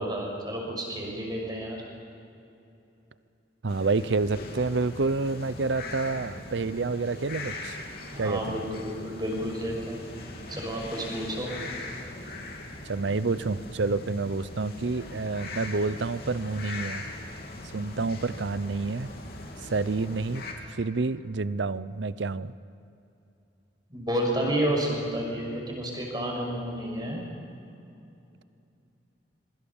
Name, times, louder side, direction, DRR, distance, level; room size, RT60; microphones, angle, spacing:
voice 1, 0.0-1.8 8.1-10.0 10.5-11.5 23.9-27.2, right 1 dB, 20° right, 1 dB, 6.0 m, -30 dB
voice 2, 3.6-7.8 8.2-8.6 12.9-17.0 17.7-19.1 19.6-20.4 20.7-22.5, right 3 dB, 75° right, 16 dB, 0.7 m, -28 dB
sound 1, 3.7-20.5, left 2 dB, 55° left, 3.4 m, -41 dB
26.0 x 23.5 x 7.1 m, 2.8 s
head